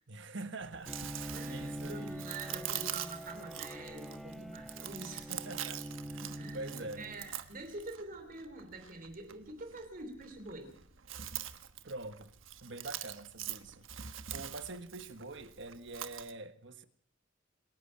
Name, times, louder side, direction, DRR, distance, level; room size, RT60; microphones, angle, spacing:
voice 1, 0.1-1.1 1.5-2.2 5.3-7.1 11.8-12.3 12.6-14.1 14.3-16.8, right 2 dB, 65° right, 1.4 m, -45 dB
Chewing mastication, 0.6-16.3, right 11 dB, 90° right, 1.2 m, -45 dB
Bowed string instrument, 0.9-7.5, equal, ahead, 1.4 m, -44 dB
voice 2, 1.3-5.3 6.4-10.8, right 2 dB, 45° right, 3.1 m, -46 dB
27.0 x 11.5 x 8.7 m
head